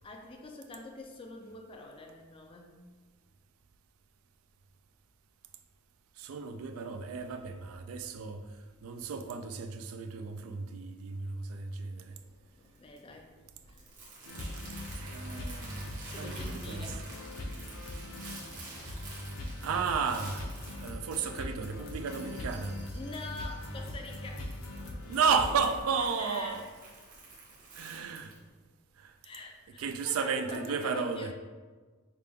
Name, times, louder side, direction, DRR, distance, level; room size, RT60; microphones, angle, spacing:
voice 1, 0.0-2.9 12.6-13.3 13.7-13.8 16.1-17.1 17.6-17.9 22.9-24.5 26.0-26.7 29.2-31.3, left 2 dB, 25° left, 0.3 m, -45 dB
voice 2, 6.2-8.5 8.8-12.2 14.9-16.9 19.6-20.5 20.8-22.8 25.1-26.7 27.7-28.3 29.0-29.1 29.8-31.3, right 5 dB, 75° right, 0.3 m, -33 dB
Crumpling crinkling, 12.0-28.4, right 3 dB, 40° right, 0.9 m, -50 dB
Guitar And Synth Loop, 14.2-25.8, left 1 dB, 75° left, 0.7 m, -41 dB
5.2 x 2.2 x 3.3 m
head